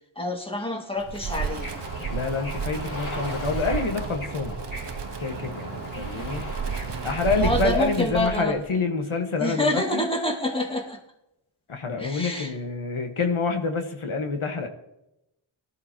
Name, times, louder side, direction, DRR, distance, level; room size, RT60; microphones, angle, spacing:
voice 1, 0.2-1.7 7.4-8.6 9.4-11.0 12.0-12.5, left 1 dB, 10° left, 2 dB, 2.0 m, -27 dB
Wind, 1.0-8.7, right 7 dB, 60° right, 0.7 m, -33 dB
Bird / Ocean, 1.2-7.7, equal, 40° left, 2.9 m, -37 dB
voice 2, 2.1-4.6 5.2-6.4 7.0-10.0 11.7-14.7, left 4 dB, 90° left, 4 dB, 1.6 m, -27 dB
18.0 x 13.0 x 3.0 m, 0.87 s
wide cardioid pair, 65°, 48 cm